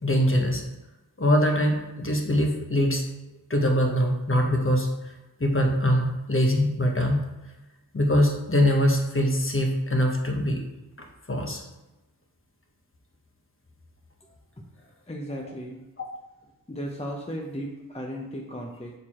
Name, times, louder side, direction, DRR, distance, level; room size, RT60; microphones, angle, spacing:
voice 1, 0.0-0.6 1.2-3.0 3.5-5.1 5.4-7.3 7.9-10.6 11.3-11.6, equal, 35° left, 1 dB, 1.2 m, -23 dB
voice 2, 14.2-14.6 15.1-15.8 16.7-18.9, equal, 15° left, 0 dB, 0.8 m, -36 dB
6.7 x 4.7 x 4.3 m, 1.0 s
wide cardioid pair, 80°, 36 cm